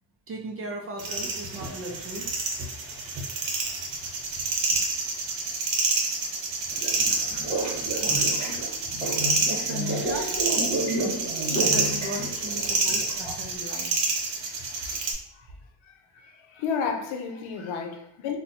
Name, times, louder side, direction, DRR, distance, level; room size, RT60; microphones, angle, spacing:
voice 1, 0.3-2.3 6.1-6.2 6.6-6.8 8.8-8.9 9.5-10.7 11.5-13.9, right 2 dB, 30° right, 1 dB, 0.4 m, -37 dB
sound 1, 1.0-15.1, right 3 dB, 75° right, 0.8 m, -28 dB
sound 2, 6.7-13.5, right 1 dB, 15° right, 1.0 m, -31 dB
voice 2, 15.8-18.4, left 6 dB, 90° left, 4 dB, 0.7 m, -32 dB
4.0 x 2.2 x 2.7 m, 0.77 s
cardioid pair, 155°, 47 cm